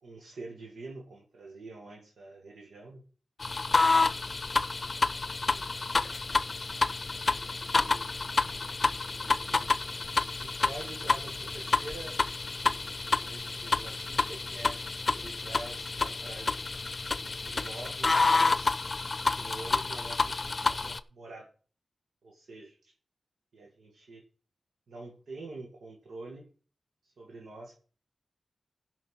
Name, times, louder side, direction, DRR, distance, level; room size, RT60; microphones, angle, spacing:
voice 1, 0.0-3.0 3.6-4.1 4.6-4.7 5.5-5.8 6.2-6.8 7.4-8.0 8.3-9.7 10.4-12.2 13.2-14.8 15.1-16.6 17.4-18.8 19.2-21.5 22.2-22.9 23.5-24.2 24.9-26.5 27.0-27.8, right 2 dB, 90° right, 0 dB, 2.1 m, -46 dB
sound 1, 3.4-21.0, left 3 dB, 45° left, 0.7 m, -29 dB
16.0 x 5.5 x 5.7 m, 0.40 s
cardioid pair, 60°, 0 cm